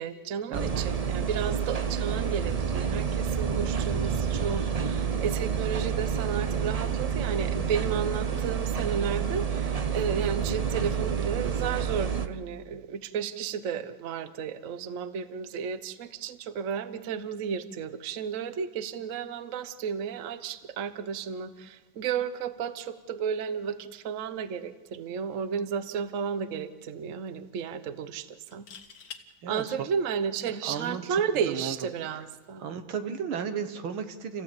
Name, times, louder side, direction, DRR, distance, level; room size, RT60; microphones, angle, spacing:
voice 1, 0.0-28.7 29.5-32.6, right 7 dB, 50° right, 12 dB, 1.2 m, -33 dB
sound 1, 0.5-12.3, right 7 dB, 65° right, 0.3 m, -29 dB
sound 2, 25.6-25.8 26.1-26.2 28.4-29.2 31.1-31.3, left 7 dB, 80° left, 2.3 m, -45 dB
voice 2, 29.4-29.7 30.6-31.0 31.4-31.8 32.6-34.4, right 7 dB, 90° right, 8 dB, 2.3 m, -34 dB
28.5 x 15.5 x 8.7 m, 1.3 s
omnidirectional pair, 2.2 m